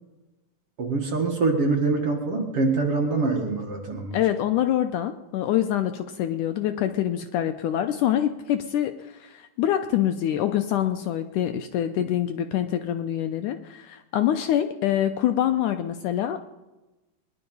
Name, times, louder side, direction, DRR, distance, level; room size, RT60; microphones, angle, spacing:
voice 1, 0.8-4.2, right 3 dB, 45° right, 1 dB, 2.3 m, -24 dB
voice 2, 4.1-16.4, left 11 dB, 80° left, 7 dB, 2.0 m, -25 dB
21.5 x 11.0 x 5.4 m, 1.1 s
omnidirectional pair, 4.1 m